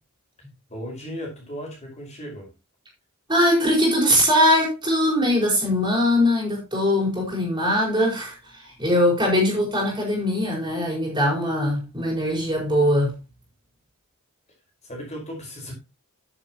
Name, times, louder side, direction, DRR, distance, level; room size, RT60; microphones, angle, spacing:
voice 1, 0.7-2.5 14.8-15.7, equal, 30° left, 5.2 m, -36 dB
voice 2, 3.3-8.3 8.6-13.2, left 1 dB, 20° right, 4.8 m, -21 dB
10.0 x 10.0 x 3.0 m
head